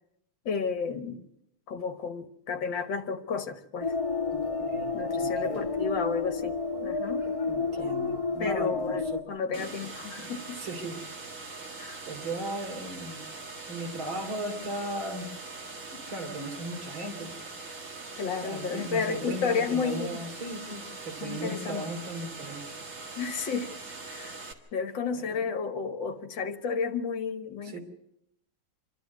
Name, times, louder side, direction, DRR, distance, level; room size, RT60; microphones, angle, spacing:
voice 1, 0.5-1.2 1.7-3.9 4.9-6.6 6.8-7.3 8.4-10.6 11.8-12.0 18.2-20.2 21.2-21.8 23.2-23.7 24.0-24.4 24.7-27.8, left 5 dB, 65° left, 1.9 m, -32 dB
sound 1, 3.8-9.2, left 4 dB, 15° left, 1.7 m, -30 dB
voice 2, 4.3-5.7 7.5-11.0 11.3-11.4 12.1-13.2 13.7-15.3 15.9-17.4 18.4-22.7 25.1-25.5 27.6-27.8, right 1 dB, 70° right, 3.8 m, -38 dB
sound 2, 9.5-24.5, right 3 dB, 40° right, 2.0 m, -42 dB
27.5 x 12.5 x 8.1 m
omnidirectional pair, 2.2 m